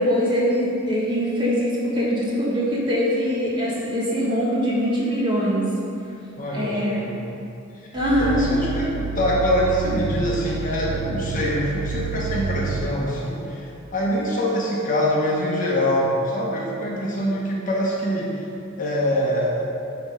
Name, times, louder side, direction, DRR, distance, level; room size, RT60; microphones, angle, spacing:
voice 1, 0.0-5.7 6.5-7.0 7.9-8.4, equal, 25° right, -7 dB, 1.6 m, -22 dB
voice 2, 6.4-7.4 8.1-18.4 18.8-19.6, equal, 40° left, -4 dB, 1.1 m, -24 dB
Growling, 8.0-12.9, right 5 dB, 45° right, 0.3 m, -29 dB
9.8 x 3.5 x 4.8 m, 2.7 s
head